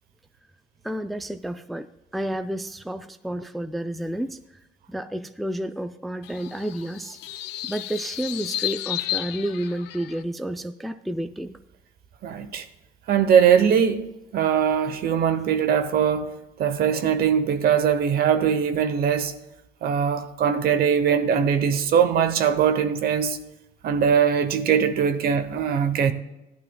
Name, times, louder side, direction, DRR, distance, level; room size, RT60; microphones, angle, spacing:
voice 1, 0.8-1.9 2.1-4.4 4.9-7.2 7.6-11.6, right 1 dB, ahead, 0.4 m, -30 dB
sound 1, 6.2-10.2, left 14 dB, 90° left, 0.4 m, -32 dB
voice 2, 12.2-12.6 13.1-16.3 16.6-19.3 19.8-23.4 23.8-26.1, right 7 dB, 65° right, 1.0 m, -21 dB
16.0 x 11.5 x 2.3 m
cardioid pair, 110°, 17 cm